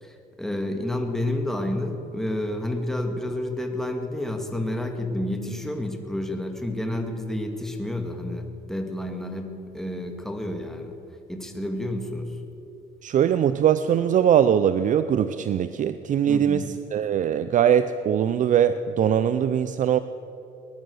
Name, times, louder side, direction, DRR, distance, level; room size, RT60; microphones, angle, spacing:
voice 1, 0.0-10.9 11.3-12.4 16.3-16.7, left 1 dB, ahead, 4 dB, 1.9 m, -30 dB
voice 2, 13.0-20.0, right 9 dB, 50° right, 12 dB, 0.6 m, -21 dB
19.5 x 11.5 x 6.4 m, 3.0 s
cardioid pair, 110°, 17 cm